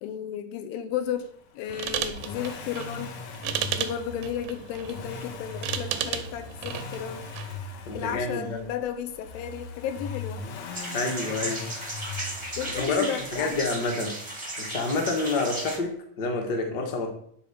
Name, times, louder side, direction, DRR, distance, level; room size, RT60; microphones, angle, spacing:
voice 1, 0.0-3.2 3.7-7.2 7.9-10.4 12.6-13.6, left 9 dB, 85° left, 9 dB, 2.5 m, -33 dB
sound 1, 1.7-7.6, right 10 dB, 80° right, 2.5 m, -34 dB
Accelerating revving vroom, 1.8-13.8 15.1-15.2, left 4 dB, 65° left, 1.9 m, -40 dB
voice 2, 7.9-8.6 10.9-11.6 12.7-14.2 14.6-17.1, left 3 dB, 45° left, 2 dB, 1.3 m, -28 dB
sound 2, 10.7-15.8, right 2 dB, 20° right, 0.8 m, -35 dB
10.5 x 4.3 x 6.7 m, 0.67 s
omnidirectional pair, 4.1 m